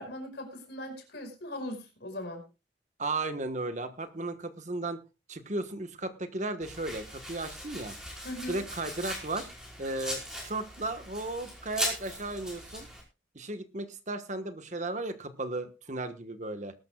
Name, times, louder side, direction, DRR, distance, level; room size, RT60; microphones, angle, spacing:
voice 1, 0.0-2.4 8.2-8.6, left 1 dB, 65° left, 5 dB, 5.1 m, -39 dB
voice 2, 3.0-5.0 5.3-8.0 8.5-9.5 9.8-12.9 13.3-16.7, right 2 dB, 40° right, 9 dB, 1.4 m, -35 dB
Domestic sounds home sounds, 6.6-13.0, equal, 5° right, 4.9 m, -39 dB
20.5 x 12.5 x 2.4 m, 0.29 s
head